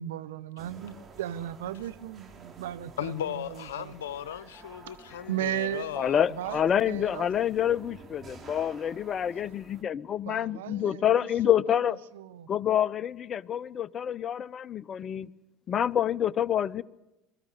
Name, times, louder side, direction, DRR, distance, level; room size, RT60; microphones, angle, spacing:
voice 1, 0.0-3.9 5.3-6.0 6.3-7.3 10.3-11.3 11.7-12.5, right 12 dB, 80° right, 0.7 m, -36 dB
sound 1, 0.6-9.8, right 4 dB, 35° right, 3.1 m, -51 dB
voice 2, 3.0-6.3, left 10 dB, 80° left, 0.9 m, -36 dB
voice 3, 6.0-12.0 12.5-15.3 15.7-16.8, left 10 dB, 40° left, 0.6 m, -27 dB
22.0 x 14.0 x 9.4 m
hypercardioid pair, 70°, 0 cm